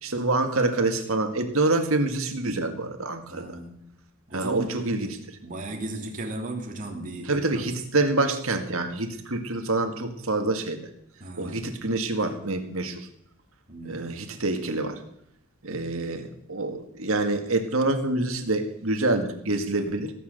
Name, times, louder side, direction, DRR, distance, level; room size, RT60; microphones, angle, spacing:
voice 1, 0.0-3.5 4.3-5.2 7.3-10.8 11.4-13.1 13.8-15.0 15.6-20.1, right 2 dB, 70° right, 5 dB, 2.0 m, -26 dB
voice 2, 3.3-3.7 4.3-4.7 5.4-7.6 11.2-11.7 13.7-14.1, right 2 dB, 35° right, 1 dB, 2.9 m, -35 dB
17.5 x 8.4 x 6.8 m, 0.75 s
head